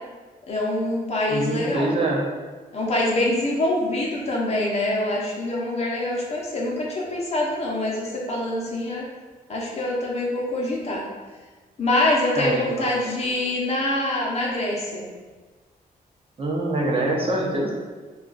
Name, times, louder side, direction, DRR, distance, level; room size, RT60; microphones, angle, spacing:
voice 1, 0.5-1.9 2.7-9.0 9.5-11.1 11.8-15.1, left 1 dB, 45° left, -3 dB, 0.7 m, -25 dB
voice 2, 1.3-2.2 12.3-12.9 16.4-17.7, right 1 dB, 35° right, -2 dB, 0.6 m, -24 dB
2.4 x 2.3 x 3.8 m, 1.3 s
cardioid pair, 110°, 16 cm